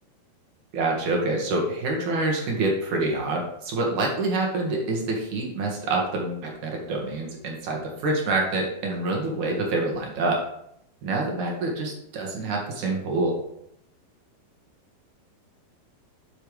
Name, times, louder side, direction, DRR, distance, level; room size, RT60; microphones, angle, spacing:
voice 1, 0.7-10.4 11.0-13.3, right 2 dB, 55° right, -1 dB, 2.4 m, -26 dB
11.0 x 7.0 x 3.3 m, 0.75 s
omnidirectional pair, 5.5 m